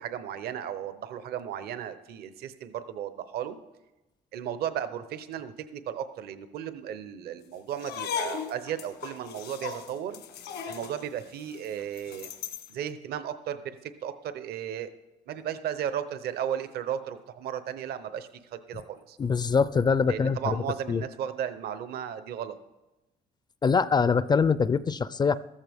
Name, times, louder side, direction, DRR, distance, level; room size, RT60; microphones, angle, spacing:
voice 1, 0.0-3.6 4.3-10.2 10.7-12.3 12.7-14.9 15.3-19.2 20.1-22.5, right 9 dB, 70° right, 11 dB, 0.9 m, -35 dB
sound 1, 7.7-12.7, left 7 dB, 80° left, 1.5 m, -37 dB
voice 2, 19.2-20.6 20.9-21.0 23.6-25.4, left 5 dB, 25° left, 17 dB, 0.4 m, -23 dB
14.0 x 14.0 x 3.6 m, 1.0 s
cardioid pair, 110°, 17 cm